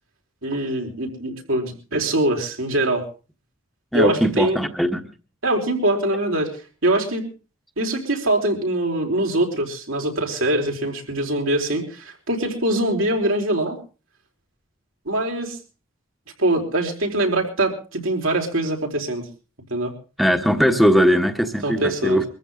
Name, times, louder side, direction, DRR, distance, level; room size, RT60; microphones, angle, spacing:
voice 1, 0.4-3.1 3.9-4.6 5.4-6.5 6.8-7.3 7.8-13.8 15.1-15.6 16.4-19.2 19.7-19.9 21.6-22.2, right 1 dB, 80° right, 2 dB, 4.5 m, -23 dB
voice 2, 3.9-5.1 20.2-22.2, equal, ahead, 6 dB, 1.3 m, -19 dB
23.5 x 14.0 x 3.8 m, 0.35 s
head